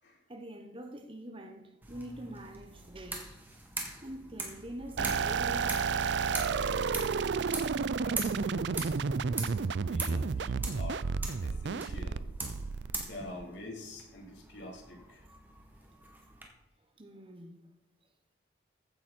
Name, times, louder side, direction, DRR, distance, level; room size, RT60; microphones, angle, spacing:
voice 1, 0.3-3.3 4.0-6.9 13.2-13.3 17.0-17.6, right 1 dB, 30° right, 1.2 m, -45 dB
sound 1, 1.8-16.5, right 2 dB, 10° right, 1.8 m, -43 dB
sound 2, 5.0-13.4, right 5 dB, 65° right, 0.4 m, -31 dB
voice 2, 8.0-9.6 9.8-11.0 11.4-12.2 13.0-15.3, left 1 dB, 70° left, 3.7 m, -46 dB
15.0 x 8.7 x 4.4 m
head